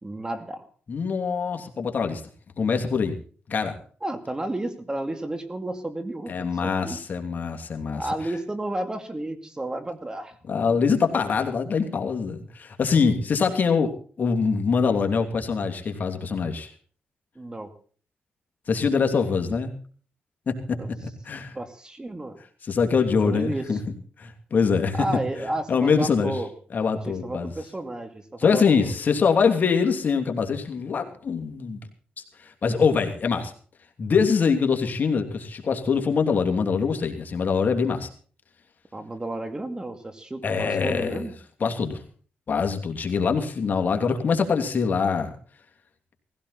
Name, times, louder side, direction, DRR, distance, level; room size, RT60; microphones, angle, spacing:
voice 1, 0.0-0.6 4.0-7.0 8.0-10.3 17.4-17.7 20.7-20.9 21.5-22.4 23.2-23.8 24.9-26.5 27.1-28.9 38.9-41.3, right 1 dB, 20° right, 8 dB, 2.5 m, -32 dB
voice 2, 0.9-2.2 2.6-3.2 3.5-3.8 6.3-8.0 10.5-13.9 14.2-16.7 18.7-19.7 20.5-21.6 22.7-23.8 24.2-26.3 26.7-27.5 28.4-31.8 32.4-33.5 34.0-38.1 40.4-41.2 41.6-42.0 42.5-45.3, left 5 dB, 55° left, 4 dB, 2.9 m, -24 dB
18.5 x 16.0 x 4.2 m, 0.43 s
cardioid pair, 75°, 4 cm